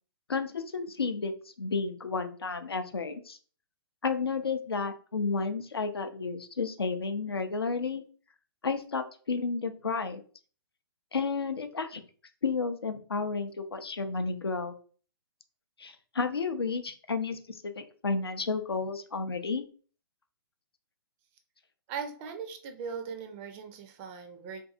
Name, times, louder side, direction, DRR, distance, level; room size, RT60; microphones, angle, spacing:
voice 1, 0.3-3.4 4.0-8.0 8.6-10.2 11.1-12.0 12.4-14.7 15.8-19.6, left 4 dB, 85° left, 8 dB, 0.4 m, -32 dB
voice 2, 21.9-24.6, right 6 dB, 25° right, 6 dB, 0.4 m, -39 dB
2.6 x 2.4 x 2.4 m, 0.41 s
figure-of-eight pair, 125°, 13 cm